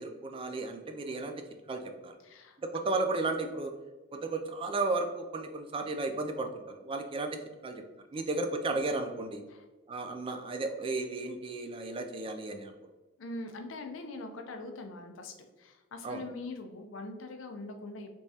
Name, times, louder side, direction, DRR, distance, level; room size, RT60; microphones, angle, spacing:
voice 1, 0.0-1.3 1.7-2.2 2.6-3.7 4.1-7.4 7.6-7.8 8.1-9.4 9.9-12.7 16.0-16.2, right 3 dB, 25° right, 5 dB, 0.3 m, -34 dB
voice 2, 2.2-2.6 9.5-9.6 13.2-18.1, left 2 dB, 70° left, 6 dB, 0.5 m, -42 dB
3.5 x 3.1 x 2.7 m, 1.2 s
head